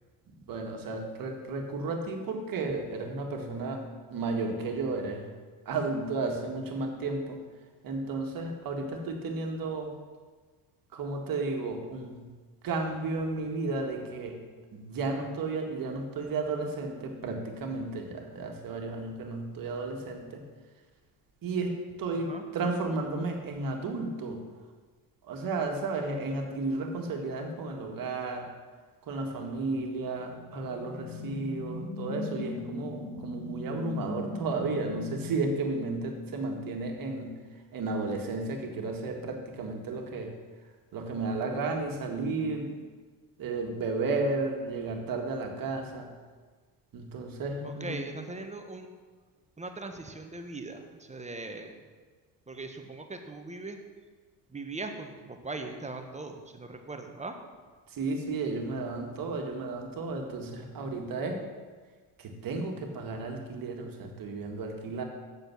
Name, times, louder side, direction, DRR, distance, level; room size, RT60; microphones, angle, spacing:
voice 1, 0.5-3.8 4.1-5.3 5.7-7.4 7.8-9.9 10.9-12.3 12.6-14.4 14.7-20.4 21.4-24.4 25.2-28.5 29.0-37.3 37.7-40.3 40.9-42.8 43.4-46.1 46.9-48.0 57.9-61.4 62.2-65.0, right 3 dB, 50° right, 3 dB, 1.8 m, -33 dB
sound 1, 30.1-36.6, left 2 dB, 25° left, 1.8 m, -39 dB
voice 2, 47.6-48.9 49.6-51.8 52.5-53.8 54.5-57.3, right 3 dB, 15° right, 5 dB, 1.2 m, -40 dB
7.9 x 6.9 x 6.0 m, 1.4 s
hypercardioid pair, 75°, 45 cm